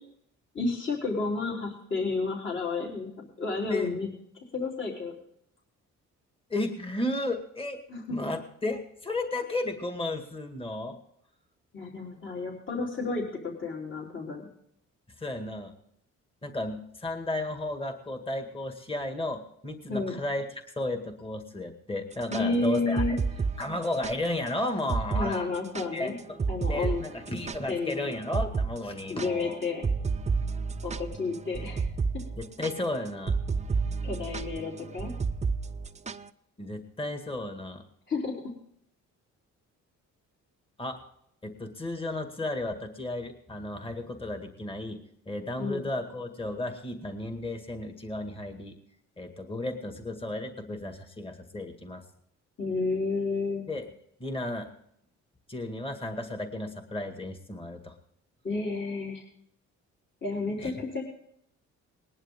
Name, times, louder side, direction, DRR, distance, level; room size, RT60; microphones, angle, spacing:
voice 1, 0.5-4.1 4.5-5.1 7.9-8.3 11.7-14.5 19.9-20.1 22.3-23.2 25.1-26.1 26.5-27.0 27.7-28.1 29.1-29.8 30.8-31.8 34.0-35.1 38.1-38.4 45.6-45.9 52.6-53.6 58.4-59.2 60.2-61.0, left 3 dB, 40° left, -2 dB, 3.7 m, -31 dB
voice 2, 6.5-7.8 8.1-11.0 15.2-15.7 16.4-20.4 20.8-23.2 23.6-25.5 25.9-26.4 26.7-29.6 32.4-33.4 36.6-37.8 40.8-41.0 41.4-45.0 45.3-48.8 49.2-52.0 53.7-53.8 54.2-54.7 55.5-57.9 60.6-60.7, left 1 dB, 20° left, 5 dB, 2.0 m, -33 dB
sound 1, 22.1-24.2 24.5-24.6 24.9-25.3 25.5-27.9 28.3-28.7 29.0-36.3, right 4 dB, 25° right, 0.7 m, -30 dB
20.0 x 11.0 x 3.7 m, 0.70 s
cardioid pair, 90°, 30 cm